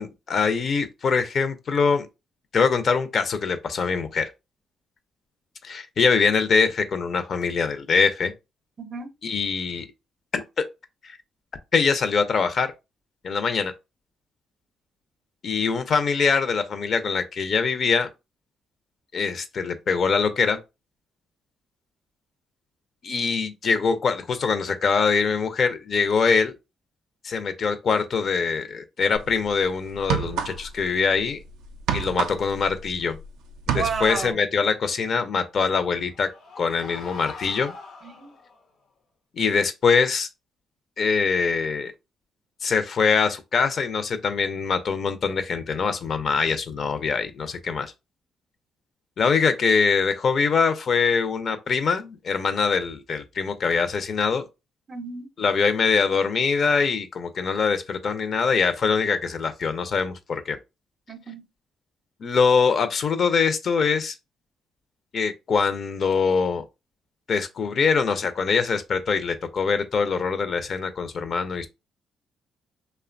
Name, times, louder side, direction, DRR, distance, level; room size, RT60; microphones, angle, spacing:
voice 1, 0.0-2.1 2.5-4.3 5.6-8.3 9.2-9.9 10.3-10.6 11.0-11.2 11.7-12.7 13.2-13.7 15.4-18.1 19.1-20.6 23.0-26.6 27.2-31.4 31.9-33.2 33.7-36.3 36.6-37.7 39.4-40.3 41.0-41.9 42.6-47.9 49.2-54.4 55.4-60.6 62.2-64.1 65.1-66.6 67.3-71.7, left 5 dB, 50° left, 0.5 m, -23 dB
voice 2, 8.8-9.1 33.7-34.4 38.0-38.4 54.9-55.3 61.1-61.5, right 5 dB, 40° right, 0.5 m, -32 dB
sound 1, 29.1-29.3 29.9-30.9 31.1-33.3 33.5-34.3, right 8 dB, 90° right, 0.4 m, -28 dB
sound 2, 36.0-38.6, left 4 dB, 80° left, 0.7 m, -42 dB
2.7 x 2.1 x 2.5 m
cardioid pair, 90°, 0 cm